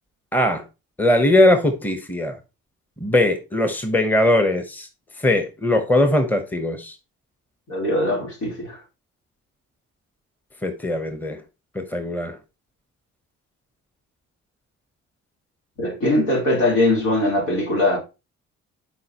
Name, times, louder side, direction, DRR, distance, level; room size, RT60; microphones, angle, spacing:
voice 1, 0.3-0.6 1.0-2.4 3.0-4.9 5.2-6.9 10.6-11.4 11.7-12.4, left 1 dB, 5° left, 1.0 m, -20 dB
voice 2, 7.7-8.8 15.8-18.0, left 1 dB, 75° left, 3.5 m, -21 dB
7.6 x 4.9 x 2.9 m
cardioid pair, 90°, 30 cm